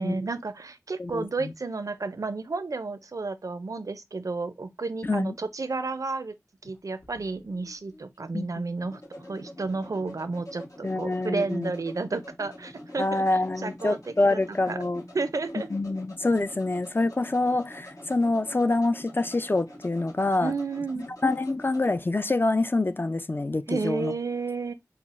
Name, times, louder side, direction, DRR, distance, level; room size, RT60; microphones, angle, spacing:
voice 1, 0.0-6.3 6.6-13.2 13.6-14.8 15.1-15.7 20.4-21.1 23.7-24.7, right 3 dB, 80° right, 0.4 m, -32 dB
voice 2, 1.0-1.5 5.0-5.3 8.3-8.5 10.8-11.7 13.0-15.0 15.7-20.5 21.2-24.1, left 2 dB, 40° left, 0.3 m, -26 dB
sound 1, 6.6-22.0, left 1 dB, 70° left, 1.1 m, -46 dB
5.6 x 2.0 x 2.4 m
wide cardioid pair, 50°, 6 cm